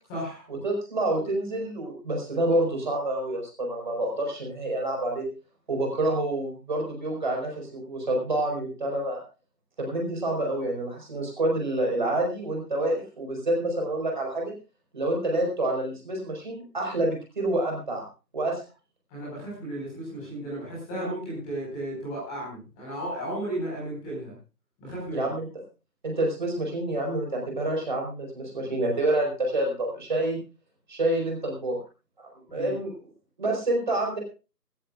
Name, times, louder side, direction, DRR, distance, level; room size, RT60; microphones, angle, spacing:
voice 1, 0.1-0.4 19.1-24.3 24.8-25.3 32.5-32.8, right 1 dB, 5° left, -6 dB, 4.8 m, -34 dB
voice 2, 0.6-5.2 5.7-9.2 9.8-14.5 14.9-18.0 18.3-18.6 25.1-25.5 26.0-30.4 30.9-31.8 32.2-32.9 33.4-34.2, right 1 dB, 30° right, 1 dB, 5.0 m, -28 dB
23.5 x 14.5 x 2.5 m, 0.32 s
figure-of-eight pair, 170°, 50 cm